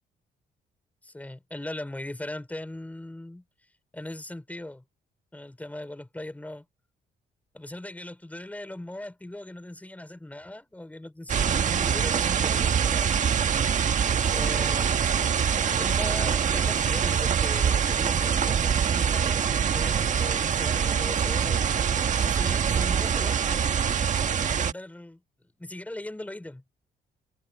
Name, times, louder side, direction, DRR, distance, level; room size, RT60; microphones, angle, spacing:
voice 1, 1.0-3.4 3.9-4.8 5.3-6.7 7.5-13.1 14.3-15.5 15.8-19.5 19.7-21.7 22.2-23.7 24.3-25.2 25.6-26.6, left 1 dB, 10° left, 4.4 m, -39 dB
sound 1, 11.3-24.7, right 7 dB, 50° right, 1.5 m, -24 dB
cardioid pair, 105°, 17 cm